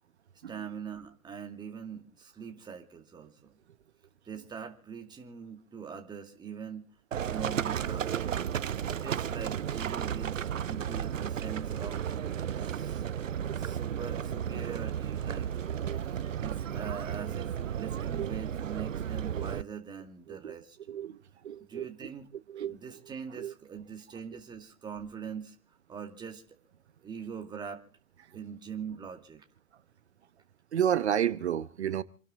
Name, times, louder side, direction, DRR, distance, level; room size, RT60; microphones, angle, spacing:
voice 1, 0.5-3.6 4.3-6.9 7.1-8.2 8.9-12.0 12.6-13.1 13.5-15.5 15.9-16.1 16.4-20.8 21.7-22.3 22.7-25.5 25.9-26.4 27.0-27.8 28.3-29.4, right 7 dB, 10° right, 2.3 m, -42 dB
Livestock farm animals working animals, 7.1-19.6, right 9 dB, 70° right, 0.6 m, -33 dB
voice 2, 13.4-13.8 15.7-16.0 18.1-18.3 19.3-19.5 20.3-20.5 20.9-21.2 21.4-21.9 22.5-22.8 23.3-23.5 30.7-32.0, right 9 dB, 55° right, 1.2 m, -31 dB
28.0 x 12.0 x 3.8 m
figure-of-eight pair, 120°, 40 cm